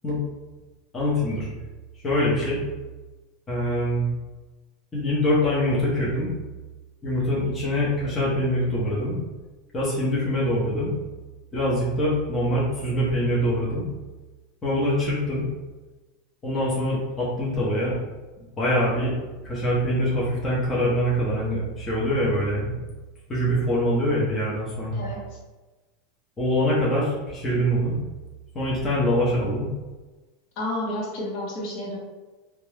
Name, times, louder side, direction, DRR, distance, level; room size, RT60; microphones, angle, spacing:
voice 1, 0.9-1.5 2.0-2.6 3.5-4.0 4.9-6.3 7.0-9.2 9.7-10.9 11.5-13.9 14.6-15.4 16.4-18.0 18.4-19.1 19.4-22.7 23.3-25.0 26.4-28.0 28.5-29.6, equal, 15° left, -7 dB, 0.8 m, -24 dB
voice 2, 24.9-25.4 30.6-32.0, left 1 dB, 50° left, -4 dB, 0.8 m, -31 dB
2.5 x 2.2 x 3.2 m, 1.2 s
supercardioid pair, 155°, 0 cm